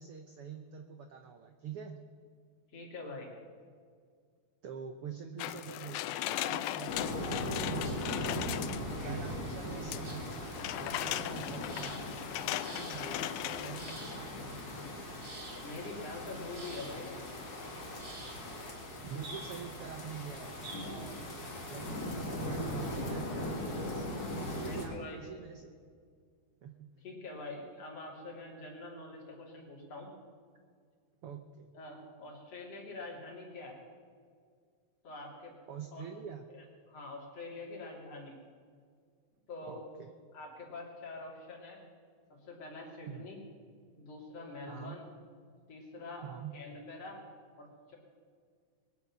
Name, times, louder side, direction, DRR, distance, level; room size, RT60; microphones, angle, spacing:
voice 1, 0.0-2.0 4.6-8.6 9.0-10.3 10.7-12.1 12.4-14.7 19.0-20.6 20.8-21.2 21.6-21.9 22.5-24.1 24.5-25.7 26.6-26.9 31.2-31.7 35.7-36.4 39.7-40.1 43.1-43.2 44.7-44.9 46.2-46.5, right 7 dB, 80° right, 6 dB, 1.2 m, -46 dB
voice 2, 2.7-3.3 9.3-9.4 15.6-17.1 24.7-25.2 27.0-30.1 31.7-33.8 35.0-35.5 35.9-36.1 36.5-38.4 39.5-39.8 40.3-41.8 42.4-43.4 44.0-45.0 45.7-46.3 46.5-47.2 47.6-48.0, left 2 dB, 50° left, -2 dB, 3.8 m, -45 dB
sound 1, 5.4-9.1 9.9-14.3 14.7-14.8, left 14 dB, 80° left, 1.9 m, -38 dB
sound 2, 6.9-24.8, left 1 dB, 30° left, 2.7 m, -39 dB
sound 3, 7.0-21.6, right 2 dB, 35° right, 1.8 m, -52 dB
22.5 x 9.4 x 6.1 m, 2.1 s
omnidirectional pair, 3.7 m